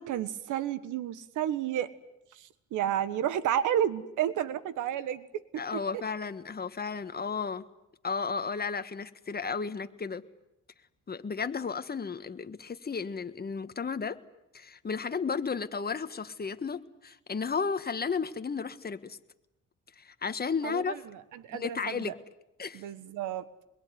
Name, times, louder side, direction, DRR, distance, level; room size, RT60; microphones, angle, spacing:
voice 1, 0.0-1.9 2.3-5.4 5.9-6.0 20.6-22.1 22.7-23.4, right 10 dB, 90° right, 14 dB, 1.5 m, -31 dB
voice 2, 5.6-7.6 8.0-10.2 11.1-14.2 14.5-19.2 19.9-21.0 21.5-22.2 22.6-22.9, left 5 dB, 30° left, 10 dB, 1.6 m, -33 dB
26.0 x 22.0 x 9.5 m, 0.89 s
cardioid pair, 90°, 30 cm